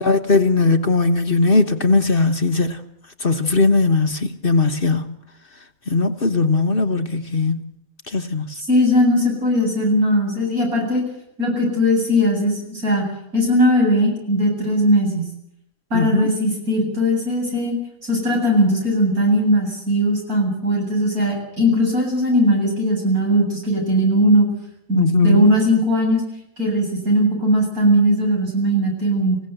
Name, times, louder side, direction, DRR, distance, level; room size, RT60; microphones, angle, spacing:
voice 1, 0.0-2.8 3.2-5.1 5.9-7.6 8.1-8.5 15.9-16.3 24.9-25.5, left 3 dB, 40° left, 1.3 m, -18 dB
voice 2, 8.6-11.0 11.4-13.0 13.3-15.3 15.9-17.7 18.0-24.5 24.9-26.2 26.6-29.4, equal, 80° right, 8.3 m, -19 dB
26.0 x 16.5 x 8.0 m
omnidirectional pair, 1.5 m